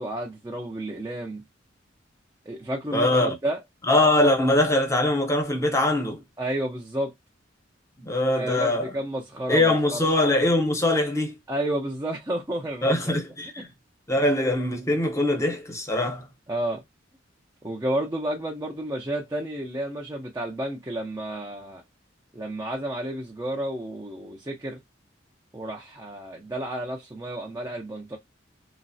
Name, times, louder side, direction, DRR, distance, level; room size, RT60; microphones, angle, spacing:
voice 1, 0.0-1.4 2.5-3.6 6.4-7.1 8.4-10.1 11.5-13.2 16.5-16.8 17.6-21.8 22.3-24.8 25.5-28.2, right 1 dB, 15° right, 0.5 m, -31 dB
voice 2, 2.9-3.3 3.9-6.2 8.0-9.0 9.5-11.4 12.8-13.7 14.1-16.3, left 1 dB, 15° left, 0.7 m, -22 dB
3.1 x 2.0 x 2.6 m
head